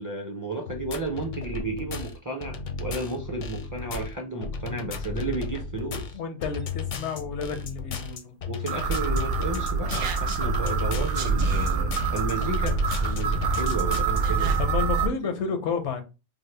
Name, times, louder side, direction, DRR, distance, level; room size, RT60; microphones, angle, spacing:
voice 1, 0.0-6.2 8.5-14.6 15.0-15.1, right 2 dB, 25° right, 0.4 m, -33 dB
sound 1, 0.7-14.2, left 5 dB, 60° left, 0.5 m, -34 dB
voice 2, 6.1-8.4 14.6-16.0, left 6 dB, 85° left, 0.9 m, -31 dB
sound 2, 8.7-15.1, right 5 dB, 65° right, 0.7 m, -26 dB
3.4 x 2.0 x 3.2 m
omnidirectional pair, 1.1 m